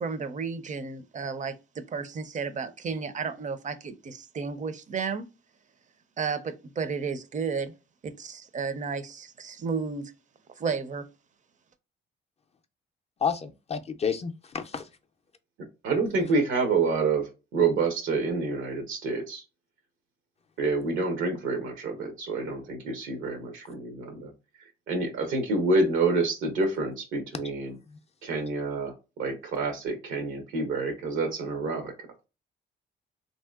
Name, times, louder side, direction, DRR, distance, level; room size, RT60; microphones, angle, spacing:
voice 1, 0.0-5.3 6.2-7.7 8.0-10.1 10.6-11.0, right 5 dB, 40° right, 0.5 m, -33 dB
voice 2, 13.2-14.8, left 6 dB, 30° left, 0.4 m, -30 dB
voice 3, 15.8-19.4 20.6-24.3 24.9-27.8 28.2-31.9, right 3 dB, 90° right, 0.9 m, -28 dB
3.0 x 2.7 x 2.3 m
cardioid pair, 90°, 20 cm